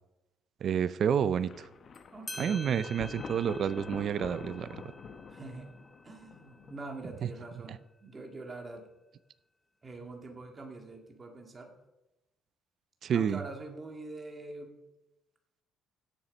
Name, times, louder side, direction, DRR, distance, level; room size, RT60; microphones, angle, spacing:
voice 1, 0.6-1.7 2.4-4.8 13.0-13.4, right 8 dB, 45° right, 16 dB, 0.5 m, -29 dB
Thunder, 1.4-7.2, left 5 dB, 35° left, 1.0 m, -47 dB
sound 1, 1.9-2.0 2.3-7.4, left 1 dB, 10° left, 0.7 m, -48 dB
voice 2, 2.1-3.0 5.3-5.7 6.0-8.8 9.8-11.7 13.1-14.7, right 2 dB, 20° right, 3 dB, 1.9 m, -44 dB
16.0 x 7.3 x 5.2 m, 0.97 s
cardioid pair, 155°, 0 cm